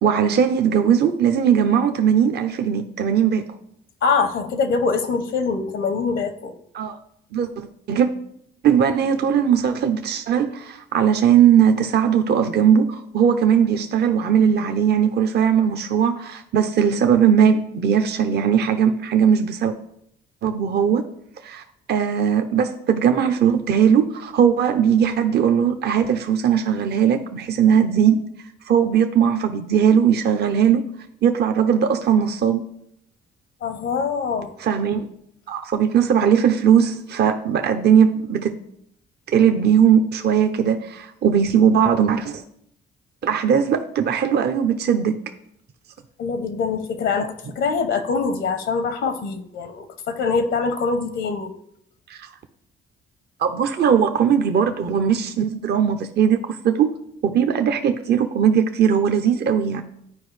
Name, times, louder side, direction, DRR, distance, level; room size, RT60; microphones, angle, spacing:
voice 1, 0.0-3.5 6.7-7.0 7.3-8.1 8.6-19.7 20.4-21.0 21.4-21.6 21.9-28.2 28.7-30.8 31.2-32.6 34.6-35.1 35.5-38.5 39.3-42.4 43.2-45.1 52.1-52.3 53.4-56.4 56.6-56.9 57.2-59.8, right 8 dB, 55° right, 7 dB, 0.6 m, -19 dB
voice 2, 4.0-6.5 33.6-34.5 46.2-51.5, left 5 dB, 75° left, 8 dB, 0.8 m, -24 dB
11.5 x 4.6 x 3.2 m, 0.72 s
cardioid pair, 90°, 20 cm